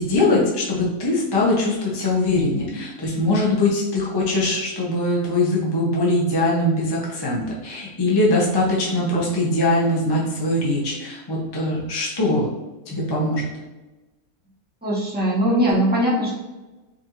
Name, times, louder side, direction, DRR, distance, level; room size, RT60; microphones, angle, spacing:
voice 1, 0.0-12.5 12.9-13.5, left 2 dB, 20° left, -5 dB, 0.6 m, -21 dB
voice 2, 14.8-16.4, equal, 5° right, -7 dB, 1.1 m, -20 dB
5.1 x 2.6 x 3.0 m, 1.1 s
omnidirectional pair, 1.6 m